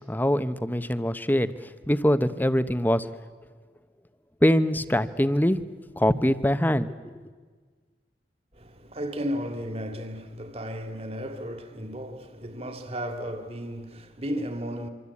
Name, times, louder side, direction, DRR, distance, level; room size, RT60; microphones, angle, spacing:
voice 1, 0.1-1.5 1.9-3.1 4.4-5.6 6.0-7.1, equal, 10° left, 0.9 m, -23 dB
voice 2, 8.5-14.9, equal, 35° right, 2.4 m, -34 dB
26.0 x 25.0 x 8.5 m
head